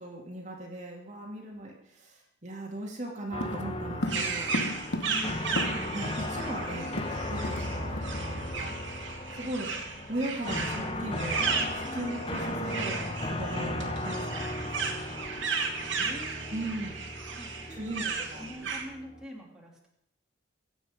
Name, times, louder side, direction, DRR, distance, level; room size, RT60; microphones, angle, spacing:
voice 1, 0.0-4.6 5.9-7.0 7.3-8.7 9.3-9.7 10.1-15.2 16.5-17.0 17.7-18.0 18.3-18.5, right 1 dB, 35° right, -1 dB, 2.5 m, -38 dB
sound 1, 3.3-19.2, left 1 dB, 25° left, 1.1 m, -36 dB
sound 2, 3.4-6.1 6.3-6.4 6.7-7.7 8.0-8.2 8.6-8.8, left 1 dB, 60° left, 1.0 m, -35 dB
sound 3, 4.1-18.8, right 5 dB, 65° right, 2.4 m, -35 dB
voice 2, 5.0-5.5 15.9-16.7 17.3-19.9, equal, 5° right, -3 dB, 2.9 m, -45 dB
23.0 x 9.1 x 5.2 m, 0.75 s
head